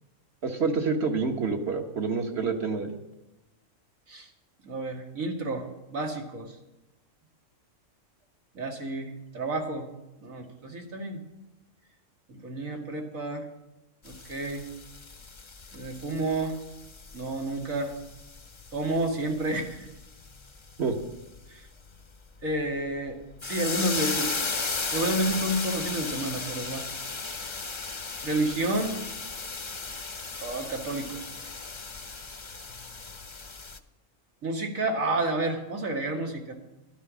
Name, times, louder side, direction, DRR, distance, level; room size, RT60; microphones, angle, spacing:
voice 1, 0.4-2.9 20.8-20.9, right 4 dB, 55° right, 4 dB, 1.7 m, -27 dB
voice 2, 4.6-5.6 5.9-6.5 8.5-9.9 10.2-11.2 12.3-13.5 14.0-14.6 15.7-16.6 17.1-17.9 18.7-19.9 21.5-21.6 22.4-23.2 23.4-26.8 28.2-29.0 30.4-31.2 34.4-36.5, right 2 dB, 90° right, 2 dB, 2.4 m, -30 dB
sound 1, 14.1-33.8, left 4 dB, 30° left, 0.6 m, -36 dB
13.0 x 12.5 x 6.3 m, 0.97 s
omnidirectional pair, 1.4 m